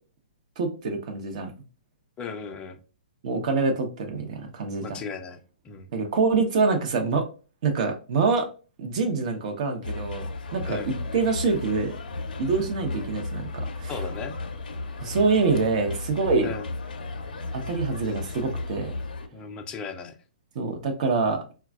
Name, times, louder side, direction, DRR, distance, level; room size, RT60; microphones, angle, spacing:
voice 1, 0.6-1.5 3.2-5.0 5.9-7.2 7.6-8.4 8.8-10.2 10.5-12.0 12.4-13.5 13.8-13.9 15.0-16.5 17.5-18.9 20.5-21.4, right 4 dB, 50° right, 0.8 m, -25 dB
voice 2, 2.2-2.8 4.8-5.4 5.6-5.9 10.7-10.9 13.9-14.4 16.4-16.7 19.3-20.2, left 5 dB, 20° left, 0.5 m, -36 dB
sound 1, 9.8-19.3, left 2 dB, 75° left, 0.5 m, -34 dB
3.9 x 2.3 x 2.2 m
hypercardioid pair, 125°, 5 cm